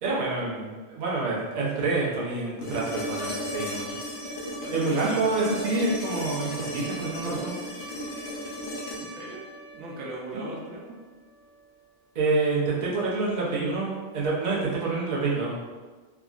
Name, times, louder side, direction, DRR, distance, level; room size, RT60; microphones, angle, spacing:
voice 1, 0.0-3.9 4.7-7.6 10.3-10.5 12.1-15.6, right 3 dB, 50° right, -5 dB, 0.7 m, -27 dB
sound 1, 2.6-10.7 12.8-12.9, equal, 75° left, 0.8 m, -35 dB
voice 2, 4.6-5.4 9.0-9.5 9.7-11.0, right 2 dB, 80° right, -4 dB, 0.9 m, -40 dB
3.4 x 2.0 x 2.4 m, 1.4 s
omnidirectional pair, 1.2 m